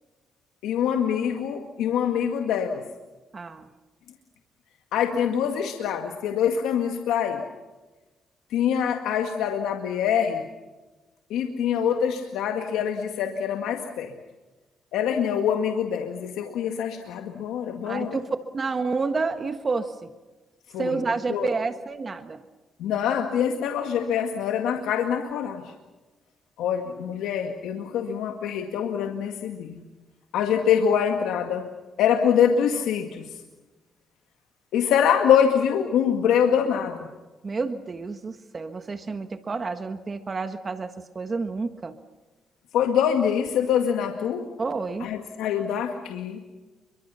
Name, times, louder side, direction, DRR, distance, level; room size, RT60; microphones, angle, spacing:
voice 1, 0.6-2.8 4.9-7.4 8.5-10.5 11.3-14.1 14.9-18.2 20.7-21.0 21.3-21.5 22.8-25.7 26.6-29.8 30.3-31.7 32.0-33.3 34.7-37.1 42.7-44.5 45.0-46.4, left 8 dB, 90° left, 4 dB, 2.0 m, -24 dB
voice 2, 3.3-3.7 17.8-18.3 18.5-20.1 20.8-22.4 37.4-42.0 44.6-45.1, right 4 dB, 35° right, 8 dB, 1.5 m, -29 dB
29.5 x 24.0 x 5.7 m, 1.2 s
cardioid pair, 85°, 0 cm